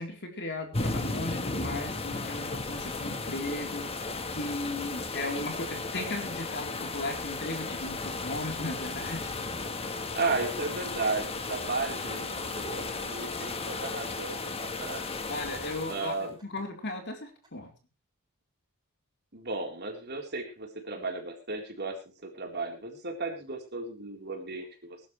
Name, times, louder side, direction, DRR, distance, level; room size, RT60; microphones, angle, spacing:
voice 1, 0.0-9.4 15.3-17.7, left 2 dB, 55° left, 3 dB, 3.8 m, -36 dB
sound 1, 0.7-16.3, left 3 dB, 30° left, 1.4 m, -35 dB
sound 2, 5.1-5.8 6.4-7.1 7.5-8.3 8.7-10.3 10.8-11.5 12.0-12.6 13.1-14.8 15.3-15.9 16.3-16.9 17.4-17.5, equal, 20° right, 7.5 m, -54 dB
voice 2, 10.1-15.1 15.9-16.3 19.3-25.0, right 3 dB, 50° right, 2 dB, 4.0 m, -34 dB
21.5 x 12.0 x 3.3 m, 0.31 s
head